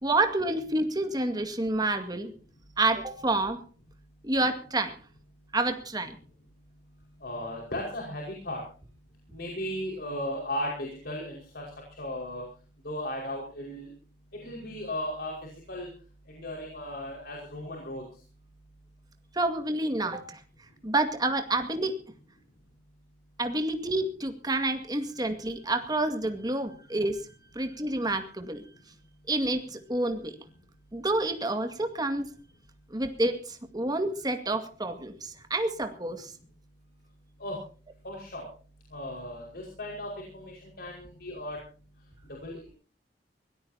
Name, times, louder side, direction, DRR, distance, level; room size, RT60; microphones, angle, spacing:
voice 1, 0.0-2.3 2.8-3.6 4.2-5.0 5.5-6.2 19.3-20.4 20.8-22.0 23.4-27.2 27.5-28.6 29.3-30.4 30.9-32.3 32.9-36.3, right 2 dB, 25° right, 6 dB, 2.1 m, -28 dB
voice 2, 7.2-8.6 9.3-11.6 12.0-12.5 12.8-13.9 14.4-15.3 15.7-15.9 16.3-18.0 37.4-37.6 38.0-38.5 38.9-41.6 42.4-42.7, left 1 dB, 60° left, -1 dB, 5.4 m, -36 dB
24.0 x 17.5 x 2.9 m, 0.38 s
head